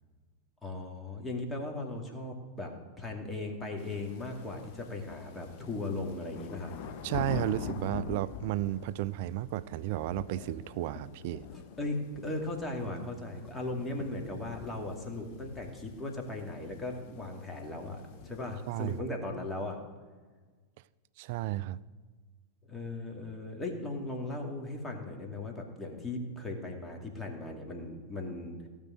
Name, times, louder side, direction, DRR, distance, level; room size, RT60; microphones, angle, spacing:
voice 1, 0.6-6.7 11.5-19.8 22.7-28.6, left 2 dB, 10° left, 2.4 m, -38 dB
sound 1, 3.8-19.0, left 7 dB, 45° left, 1.1 m, -45 dB
voice 2, 7.0-11.5 18.7-19.0 21.2-21.8, right 15 dB, 50° right, 0.4 m, -33 dB
16.5 x 5.4 x 7.7 m
figure-of-eight pair, 90°, 0 cm